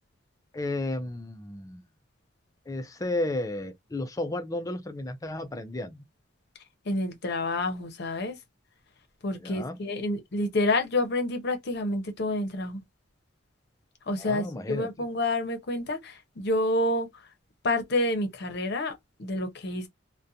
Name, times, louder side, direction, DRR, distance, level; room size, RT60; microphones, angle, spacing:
voice 1, 0.5-1.8 2.7-6.0 9.4-9.8 14.2-14.9, left 2 dB, 20° left, 0.4 m, -33 dB
voice 2, 6.8-8.4 9.2-12.8 14.1-17.3 17.6-18.9 19.2-19.9, left 2 dB, 60° left, 0.7 m, -28 dB
2.4 x 2.2 x 2.6 m
head